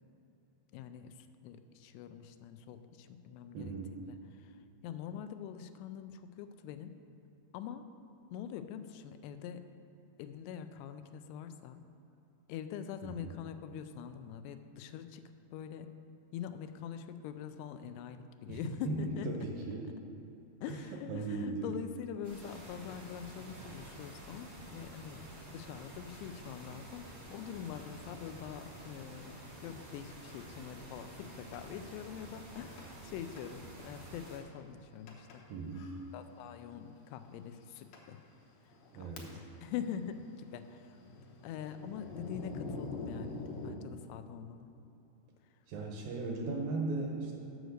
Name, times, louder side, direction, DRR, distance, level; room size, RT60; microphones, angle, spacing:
voice 1, 0.7-4.6 4.8-7.0 7.5-7.9 8.3-9.7 10.2-11.8 12.5-15.9 16.3-19.5 20.6-35.4 36.1-38.2 38.9-39.2 39.6-41.0 41.4-44.7, left 9 dB, 90° left, 10 dB, 2.7 m, -44 dB
voice 2, 3.5-4.0 13.0-13.3 18.5-19.9 20.7-20.8 21.1-21.8 35.5-36.0 38.9-39.4 45.7-47.4, right 3 dB, 75° right, 0 dB, 2.2 m, -37 dB
sound 1, 22.2-34.4, right 1 dB, 40° right, 0.9 m, -50 dB
Thunder, 31.5-31.6 32.8-33.1 33.4-33.5 34.1-34.2 35.1-35.4 35.7-35.9 36.8-36.9 37.5-37.6 37.9-38.1 38.6-39.6 39.9-43.7, left 3 dB, 70° left, 2.4 m, -44 dB
8.0 x 6.3 x 6.5 m, 3.0 s
omnidirectional pair, 4.8 m